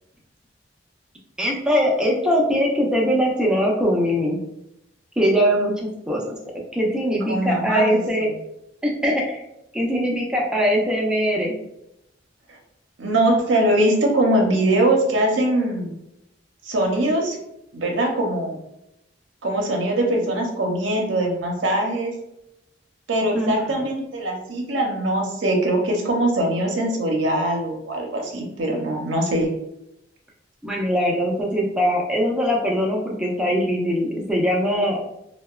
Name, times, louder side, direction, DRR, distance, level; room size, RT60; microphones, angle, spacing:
voice 1, 1.4-4.4 5.2-6.4 6.7-8.3 8.8-9.4 9.7-11.5 23.3-23.9 30.6-35.1, equal, 5° right, -2 dB, 0.4 m, -21 dB
voice 2, 7.3-8.3 13.0-15.9 16.7-17.4 17.7-18.6 19.4-22.1 23.1-29.5, right 1 dB, 75° right, 1 dB, 0.6 m, -22 dB
2.8 x 2.1 x 2.3 m, 0.83 s
head